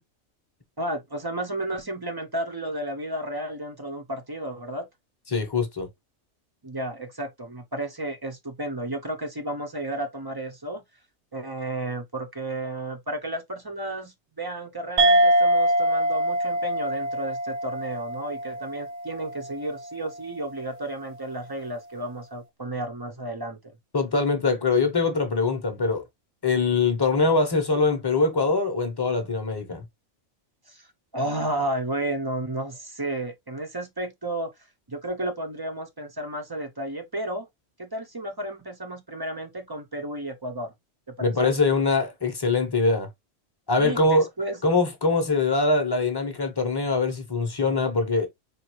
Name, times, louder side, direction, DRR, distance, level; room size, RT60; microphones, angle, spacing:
voice 1, 0.8-4.9 6.6-10.8 11.3-23.7 30.7-34.5 34.9-37.5 37.8-40.7 41.2-41.5 43.8-44.6, right 1 dB, 30° right, 0.4 m, -32 dB
voice 2, 5.3-5.9 23.9-26.0 26.4-29.8 41.2-43.1 43.7-44.2 44.6-48.3, left 3 dB, 20° left, 0.7 m, -23 dB
sound 1, 15.0-19.9, right 1 dB, 65° right, 0.9 m, -24 dB
4.8 x 2.6 x 3.0 m
omnidirectional pair, 1.4 m